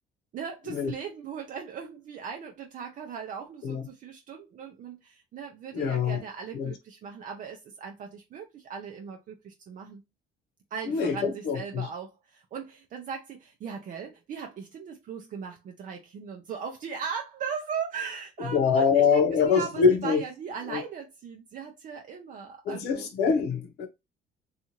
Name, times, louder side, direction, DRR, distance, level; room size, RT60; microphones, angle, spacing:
voice 1, 0.3-10.0 10.7-23.1, right 6 dB, 50° right, 0.6 m, -38 dB
voice 2, 5.7-6.2 6.5-6.7 10.9-11.9 18.5-20.2 20.7-20.8 22.6-23.9, left 6 dB, 80° left, 0.8 m, -24 dB
2.6 x 2.4 x 2.9 m
cardioid pair, 110°, 17 cm